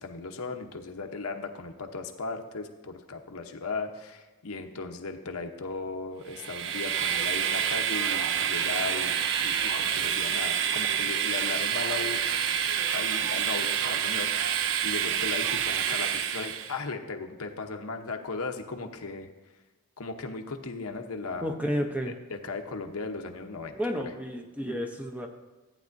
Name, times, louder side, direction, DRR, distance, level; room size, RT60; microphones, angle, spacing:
voice 1, 0.0-12.2 12.9-19.3 20.0-21.5 22.1-23.8 24.0-24.1, left 3 dB, 75° left, 5 dB, 0.9 m, -37 dB
Train, 6.3-16.8, right 8 dB, 55° right, 0.4 m, -28 dB
voice 2, 21.4-22.1 23.7-25.3, equal, 5° right, 3 dB, 0.6 m, -31 dB
14.5 x 9.2 x 2.6 m, 1.2 s
head